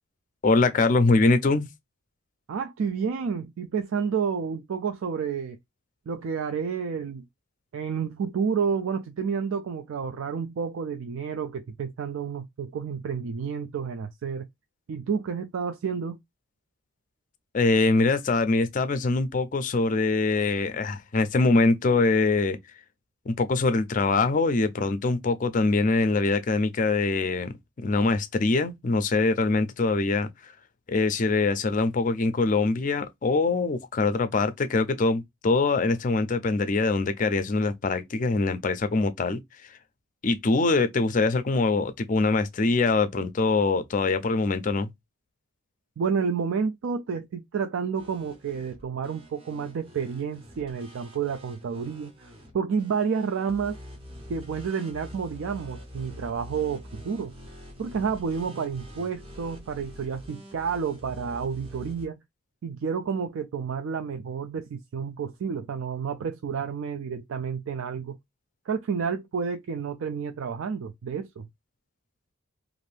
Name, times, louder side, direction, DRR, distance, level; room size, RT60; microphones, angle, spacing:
voice 1, 0.4-1.7 17.5-22.6 23.3-30.5 30.9-39.4 40.2-44.9, left 3 dB, 35° left, 0.4 m, -23 dB
voice 2, 2.5-5.6 6.1-7.2 7.7-14.5 14.9-16.2 28.0-28.1 46.0-52.3 52.5-53.8 54.3-57.3 57.8-62.2 62.6-68.2 68.7-71.5, right 6 dB, 70° right, 0.3 m, -30 dB
sound 1, 48.0-62.1, equal, 25° right, 0.6 m, -45 dB
2.6 x 2.5 x 3.2 m
head